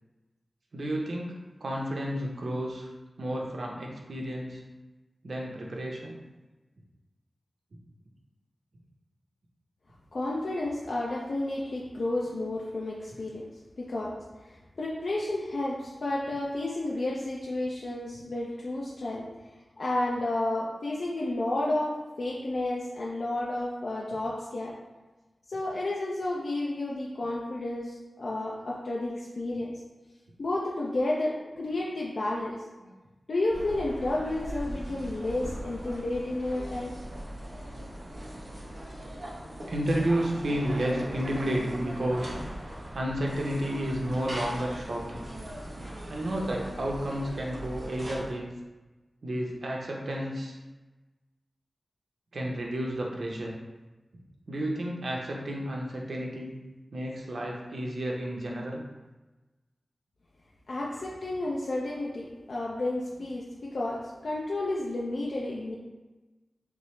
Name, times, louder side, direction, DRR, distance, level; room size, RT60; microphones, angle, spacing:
voice 1, 0.7-1.3 1.6-2.9 3.2-4.6 5.2-6.2 32.8-32.9 38.9-42.3 42.9-45.3 46.1-48.5 49.2-50.6 52.3-53.6 54.5-56.6 56.9-58.8 60.8-61.0, right 1 dB, 75° right, -1 dB, 0.7 m, -31 dB
voice 2, 10.1-13.5 13.8-14.1 14.4-19.3 19.8-24.7 25.5-29.7 30.4-32.6 33.3-36.9 60.7-65.7, left 2 dB, 70° left, -4 dB, 0.5 m, -31 dB
sound 1, 33.5-48.3, equal, 55° right, 1.0 m, -40 dB
5.9 x 2.0 x 3.2 m, 1.2 s
wide cardioid pair, 80°, 0 cm